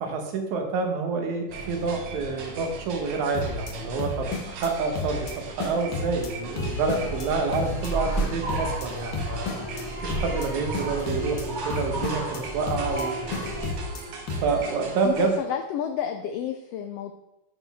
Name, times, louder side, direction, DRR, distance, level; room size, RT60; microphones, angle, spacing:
voice 1, 0.0-9.5 10.0-13.2 14.4-15.4, right 4 dB, 85° right, 4 dB, 2.4 m, -28 dB
sound 1, 1.5-15.4, right 4 dB, 65° right, 1.5 m, -40 dB
sound 2, 3.3-3.7 4.0-4.7 5.0-5.3 5.6-6.3 6.6-7.3 7.5-7.9 8.2-8.9 9.1-9.8 10.1-10.5 10.7-11.4 11.7-12.4 12.7-13.0 13.3-14.0 14.3-14.6, left 4 dB, 65° left, 1.1 m, -32 dB
sound 3, 6.5-13.7, right 2 dB, 20° right, 1.3 m, -33 dB
voice 2, 15.0-17.1, left 9 dB, 90° left, 6 dB, 1.3 m, -30 dB
11.5 x 4.2 x 3.4 m, 0.92 s
omnidirectional pair, 3.3 m